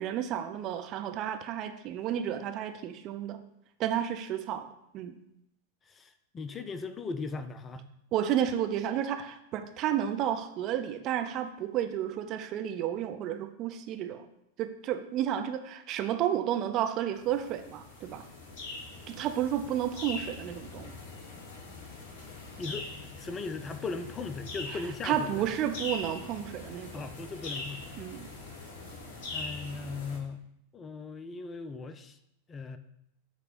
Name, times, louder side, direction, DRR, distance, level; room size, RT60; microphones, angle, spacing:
voice 1, 0.0-3.4 3.8-4.7 4.9-5.2 8.1-14.3 14.6-18.2 19.1-21.0 24.7-26.9 28.0-28.3, right 10 dB, 35° right, 7 dB, 0.5 m, -31 dB
voice 2, 5.9-7.8 22.6-25.5 26.9-27.9 29.3-30.4 30.7-32.2 32.5-32.8, left 4 dB, 20° left, 10 dB, 0.4 m, -38 dB
sound 1, 17.2-30.2, left 3 dB, 45° left, 1.3 m, -42 dB
7.6 x 3.1 x 5.1 m, 0.79 s
figure-of-eight pair, 90°, 0 cm